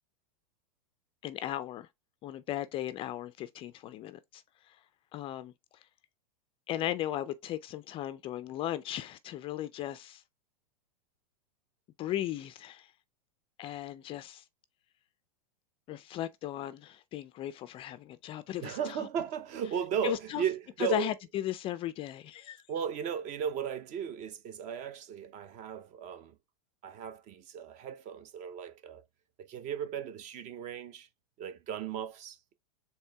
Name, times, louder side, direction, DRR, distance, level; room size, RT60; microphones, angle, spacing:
voice 1, 1.2-1.9 2.2-4.8 5.1-5.5 6.7-10.2 12.0-12.9 13.6-14.4 15.9-19.1 20.0-20.4 20.8-22.6, left 13 dB, 25° left, 0.4 m, -36 dB
voice 2, 18.6-21.1 22.7-26.3 26.8-29.0 29.5-31.1 31.4-32.5, right 8 dB, 35° right, 0.7 m, -36 dB
4.5 x 3.3 x 3.3 m
hypercardioid pair, 125°, 20 cm